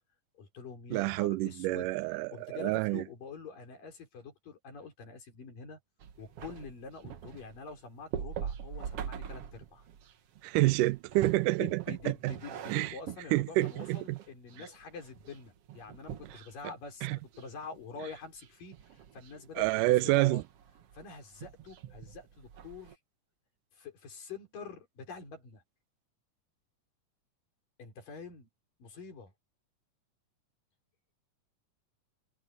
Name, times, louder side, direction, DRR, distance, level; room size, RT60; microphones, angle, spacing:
voice 1, 0.4-1.9 2.3-5.8 6.2-9.9 11.6-20.4 20.9-23.0 23.7-25.6 27.8-28.5 28.8-29.3, left 5 dB, 90° left, 6.7 m, -46 dB
voice 2, 0.9-3.0 10.4-12.3 12.7-12.9 13.3-14.2 17.0-17.2 19.6-20.4, right 19 dB, 85° right, 2.1 m, -28 dB
sound 1, 6.0-16.9 17.2-17.8 18.1-23.0, right 8 dB, 60° right, 1.8 m, -44 dB
omnidirectional pair, 3.8 m